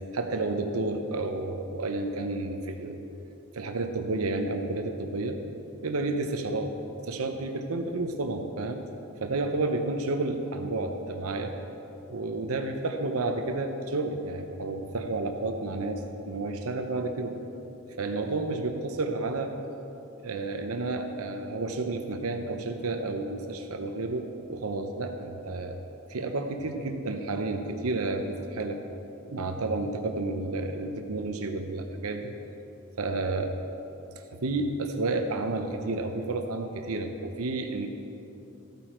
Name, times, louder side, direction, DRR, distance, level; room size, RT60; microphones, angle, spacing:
voice 1, 0.1-3.0 3.5-5.4 5.8-6.8 7.0-8.8 9.2-11.5 12.1-17.4 18.0-19.5 20.2-25.8 26.1-28.8 29.3-32.3 33.0-33.6 34.4-37.9, right 2 dB, 85° right, 5 dB, 0.7 m, -31 dB
14.5 x 9.2 x 4.4 m, 2.9 s
head